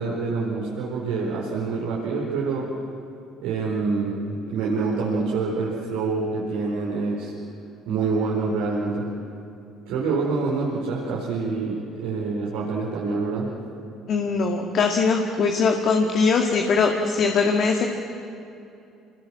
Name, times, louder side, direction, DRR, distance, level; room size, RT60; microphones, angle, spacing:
voice 1, 0.0-2.7 3.4-7.3 7.9-9.1 9.9-13.5, right 4 dB, 75° right, -4 dB, 4.7 m, -26 dB
voice 2, 14.1-17.9, left 4 dB, 60° left, 2 dB, 2.0 m, -21 dB
27.0 x 20.5 x 7.5 m, 2.7 s
hypercardioid pair, 60°, 0 cm